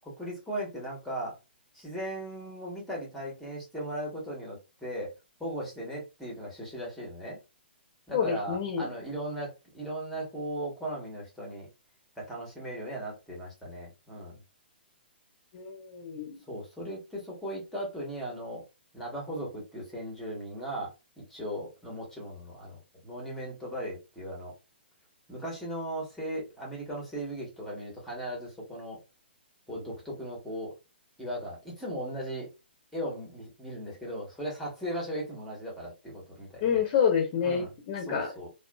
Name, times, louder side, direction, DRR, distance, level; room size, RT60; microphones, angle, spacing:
voice 1, 0.2-1.4 1.7-5.1 5.4-7.4 8.1-11.7 12.2-14.4 16.5-18.6 18.9-24.5 25.3-29.0 29.7-30.7 31.2-32.5 32.9-36.8 37.4-37.7 38.0-38.5, right 1 dB, 5° left, -3 dB, 1.1 m, -37 dB
voice 2, 8.1-8.9 15.5-16.4 36.6-38.3, left 7 dB, 35° left, 1 dB, 0.8 m, -28 dB
2.4 x 2.4 x 2.2 m, 0.27 s
hypercardioid pair, 145°, 6 cm